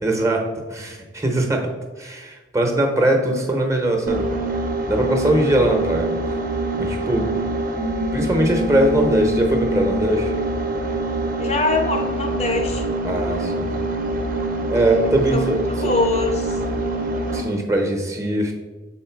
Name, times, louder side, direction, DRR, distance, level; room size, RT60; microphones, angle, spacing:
voice 1, 0.0-1.7 2.0-4.3 4.9-6.1 6.8-7.3 8.1-10.3 13.0-13.7 14.7-15.6 17.3-18.5, right 1 dB, 15° right, 3 dB, 0.8 m, -21 dB
sound 1, 4.1-17.6, right 2 dB, 45° right, 0.7 m, -25 dB
voice 2, 11.4-12.9 15.3-15.5 15.8-16.6, left 3 dB, 35° left, 4 dB, 0.7 m, -23 dB
6.4 x 4.4 x 4.5 m, 1.2 s
head